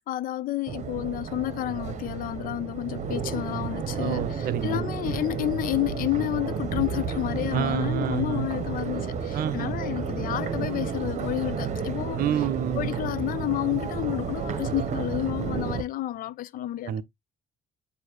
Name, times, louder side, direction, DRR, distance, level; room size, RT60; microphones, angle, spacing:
voice 1, 0.1-12.2 12.8-16.9, left 15 dB, 55° left, 0.4 m, -30 dB
Crowd, 0.7-15.8, right 6 dB, 45° right, 1.0 m, -31 dB
voice 2, 4.0-4.9 7.5-8.5 9.3-9.8 12.2-12.9 16.8-17.0, right 10 dB, 60° right, 0.5 m, -29 dB
6.4 x 2.7 x 3.0 m
cardioid pair, 110°, 17 cm